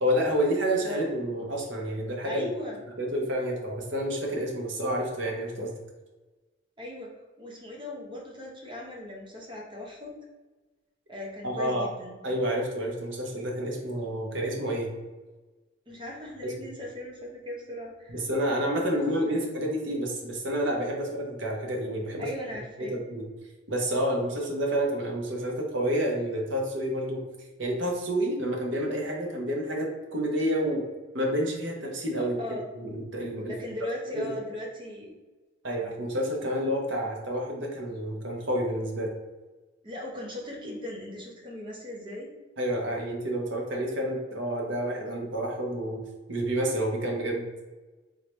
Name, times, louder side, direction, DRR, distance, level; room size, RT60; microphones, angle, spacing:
voice 1, 0.0-2.5 3.0-5.7 11.4-11.9 12.2-14.9 16.4-16.7 18.1-22.3 22.8-23.2 23.7-27.2 27.6-30.8 31.1-32.4 32.8-33.5 34.1-34.4 35.6-39.1 42.6-46.0 46.3-47.4, equal, 60° right, 0 dB, 0.9 m, -29 dB
voice 2, 2.2-2.8 6.8-7.1 7.4-10.1 11.1-12.2 15.9-18.2 18.8-19.0 19.3-19.4 22.2-22.9 32.2-32.6 33.5-35.1 39.8-42.3, left 1 dB, 25° right, -2 dB, 0.8 m, -38 dB
3.7 x 3.1 x 3.2 m, 1.2 s
head